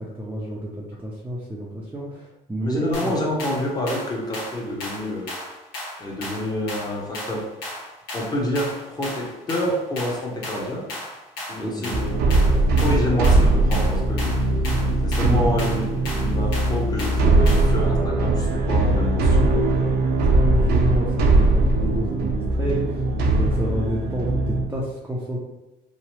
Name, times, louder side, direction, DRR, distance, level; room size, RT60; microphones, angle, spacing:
voice 1, 0.0-3.2 11.5-12.0 14.8-15.5 20.2-25.4, right 1 dB, 10° right, -6 dB, 0.4 m, -29 dB
voice 2, 2.6-5.3 6.0-7.5 8.1-10.8 11.5-14.5 15.0-19.9, left 1 dB, 25° left, -2 dB, 0.8 m, -28 dB
sound 1, 2.9-17.8, left 1 dB, 80° left, 1.0 m, -35 dB
sound 2, 11.9-24.7, right 2 dB, 70° right, 0.5 m, -20 dB
2.8 x 2.0 x 3.0 m, 0.98 s
cardioid pair, 110°, 17 cm